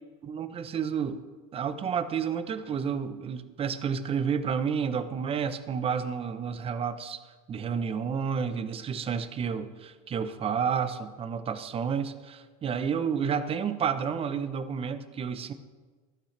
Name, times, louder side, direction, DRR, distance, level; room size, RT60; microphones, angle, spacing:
voice 1, 0.2-1.2 1.5-7.2 7.5-15.5, right 7 dB, 30° right, 12 dB, 0.9 m, -30 dB
15.0 x 12.0 x 3.4 m, 1.4 s
supercardioid pair, 105°, 18 cm